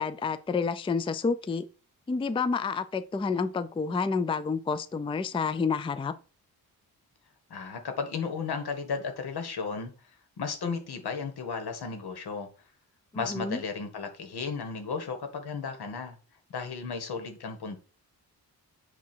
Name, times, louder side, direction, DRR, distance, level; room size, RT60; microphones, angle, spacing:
voice 1, 0.0-1.7 2.1-6.1 13.1-13.6, left 5 dB, 15° left, 0.4 m, -29 dB
voice 2, 7.5-9.9 10.4-12.5 13.1-16.2 16.5-17.8, left 5 dB, 80° left, 1.7 m, -34 dB
8.4 x 2.8 x 6.1 m
wide cardioid pair, 135°, 38 cm